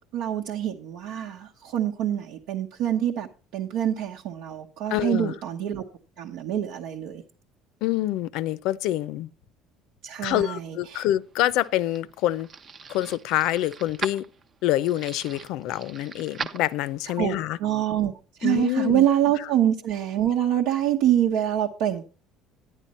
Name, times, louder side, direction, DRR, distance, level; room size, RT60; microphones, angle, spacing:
voice 1, 0.1-5.8 6.2-7.2 10.0-11.0 17.2-18.1 18.4-22.0, right 11 dB, 70° right, 1.0 m, -25 dB
voice 2, 4.9-5.3 7.8-9.3 10.2-12.5 12.9-14.3 14.6-17.6 18.4-19.1 19.4-19.5, left 14 dB, 65° left, 0.6 m, -26 dB
sound 1, 11.2-17.2, right 5 dB, 30° right, 0.6 m, -40 dB
11.0 x 9.8 x 4.2 m
cardioid pair, 155°, 0 cm